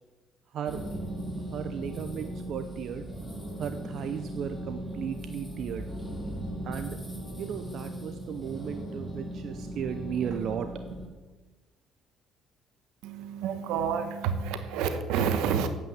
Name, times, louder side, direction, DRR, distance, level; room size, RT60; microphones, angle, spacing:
voice 1, 0.5-1.2 1.5-3.1 3.6-5.9 6.3-7.0 7.4-11.0, right 8 dB, 65° right, 8 dB, 0.7 m, -36 dB
sound 1, 0.7-11.1, right 1 dB, 5° left, 3.4 m, -38 dB
sound 2, 5.2-7.9, left 2 dB, 65° left, 1.9 m, -47 dB
voice 2, 13.0-15.7, right 7 dB, 85° right, 9 dB, 1.2 m, -29 dB
9.0 x 8.7 x 7.2 m, 1.2 s
supercardioid pair, 80°, 0 cm